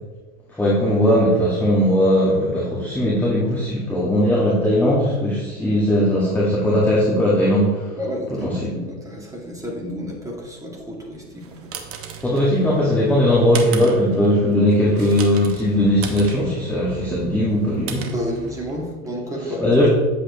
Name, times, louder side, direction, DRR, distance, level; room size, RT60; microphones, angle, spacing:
voice 1, 0.5-7.9 8.3-8.7 12.2-18.1 19.6-19.9, equal, 5° left, -6 dB, 2.1 m, -19 dB
voice 2, 7.9-11.8 18.1-19.9, equal, 10° right, -2 dB, 2.8 m, -31 dB
sound 1, 11.2-19.0, right 6 dB, 40° right, 1.3 m, -37 dB
9.8 x 8.2 x 3.3 m, 1.3 s
supercardioid pair, 120°, 33 cm